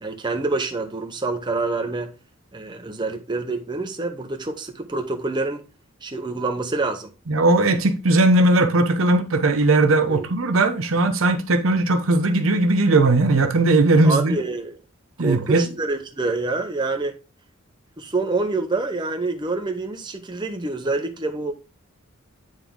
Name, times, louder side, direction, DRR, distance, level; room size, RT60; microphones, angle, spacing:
voice 1, 0.0-2.1 2.5-5.6 6.0-7.1 10.1-10.2 14.0-14.7 15.2-17.1 18.0-21.5, right 3 dB, 20° right, 0.7 m, -26 dB
voice 2, 7.3-14.4 15.2-15.7, right 2 dB, 75° right, 0.9 m, -18 dB
9.0 x 3.5 x 3.7 m
head